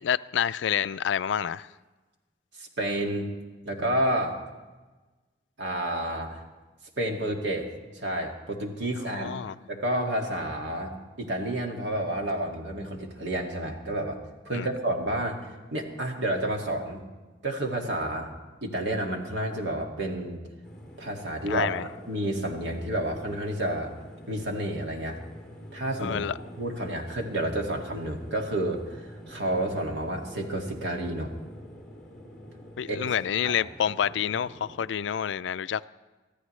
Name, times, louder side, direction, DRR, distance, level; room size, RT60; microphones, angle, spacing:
voice 1, 0.0-1.7 9.1-9.5 14.5-14.7 21.5-21.8 26.0-26.3 32.8-35.8, left 8 dB, 75° left, 0.3 m, -28 dB
voice 2, 2.6-3.3 3.6-4.4 5.6-6.4 7.0-7.7 7.9-9.3 9.7-14.2 14.4-15.4 15.7-17.1 17.4-18.3 18.6-20.4 21.0-21.7 22.1-23.9 24.3-25.2 25.7-31.3 32.9-33.0 33.4-33.6, right 1 dB, 75° right, 2.1 m, -30 dB
sound 1, 20.6-34.9, equal, 5° left, 3.8 m, -46 dB
24.5 x 14.5 x 3.2 m
head